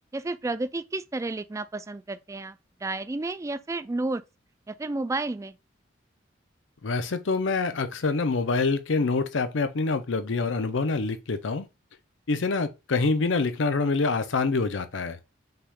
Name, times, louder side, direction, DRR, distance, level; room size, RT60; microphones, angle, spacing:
voice 1, 0.1-4.2 4.7-5.6, right 2 dB, 15° right, 0.3 m, -31 dB
voice 2, 6.8-11.7 12.3-15.2, left 3 dB, 80° left, 0.6 m, -26 dB
5.6 x 2.4 x 3.5 m
head